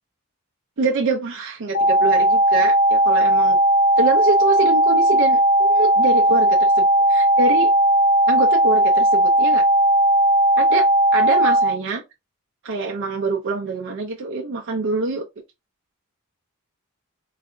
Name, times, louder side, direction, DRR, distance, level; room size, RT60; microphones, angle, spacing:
voice 1, 0.8-3.6 4.0-7.7 8.3-9.6 10.6-12.0 12.6-15.3, right 3 dB, 60° right, 0.5 m, -25 dB
sound 1, 1.7-11.7, right 1 dB, 60° left, 0.7 m, -16 dB
3.8 x 2.4 x 2.3 m
head